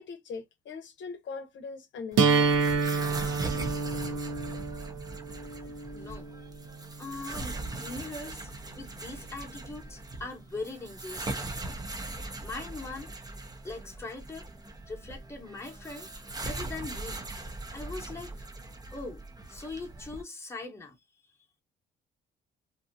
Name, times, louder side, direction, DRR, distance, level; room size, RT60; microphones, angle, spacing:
voice 1, 0.0-2.6, left 5 dB, 70° left, 0.7 m, -41 dB
sound 1, 2.1-20.2, right 2 dB, 20° right, 0.7 m, -40 dB
sound 2, 2.2-8.1, right 4 dB, 75° right, 0.7 m, -29 dB
voice 2, 5.6-6.5 7.0-11.8 12.4-13.1 13.6-14.5 14.9-16.1 16.4-17.3 17.7-18.5 18.9-21.0, left 3 dB, 15° left, 1.0 m, -41 dB
2.6 x 2.3 x 2.6 m
cardioid pair, 90°, 20 cm